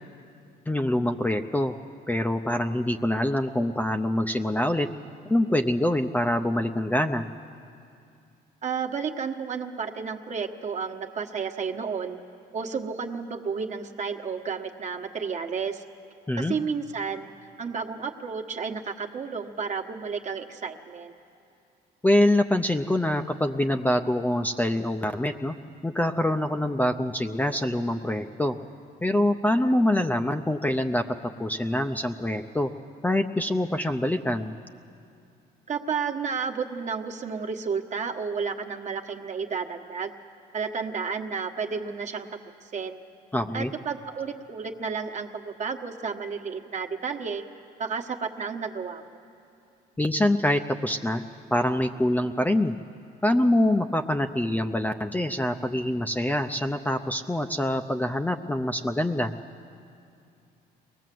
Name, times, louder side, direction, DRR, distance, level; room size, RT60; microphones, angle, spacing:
voice 1, 0.7-1.7 2.1-4.9 5.2-7.3 16.3-16.5 22.0-25.5 25.8-28.6 29.0-32.7 33.0-34.6 43.3-43.7 50.0-51.2 51.5-52.8 53.2-59.3, left 1 dB, 10° left, 6 dB, 0.5 m, -25 dB
voice 2, 8.6-12.2 12.5-15.8 16.4-21.1 35.7-40.1 40.5-42.3 42.7-43.0 43.5-47.4 47.8-49.2, right 5 dB, 45° right, 5 dB, 1.3 m, -32 dB
23.0 x 18.5 x 7.7 m, 2.6 s
cardioid pair, 110°, 17 cm